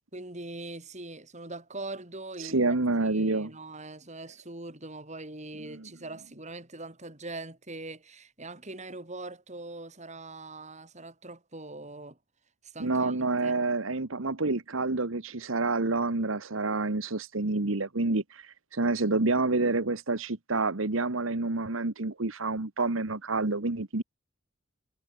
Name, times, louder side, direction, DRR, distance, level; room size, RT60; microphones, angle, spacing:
voice 1, 0.1-2.8 3.0-12.2 12.6-13.6, right 2 dB, 35° right, 6.1 m, -42 dB
voice 2, 2.4-3.5 5.7-5.9 12.8-24.0, right 3 dB, 85° right, 1.5 m, -28 dB
head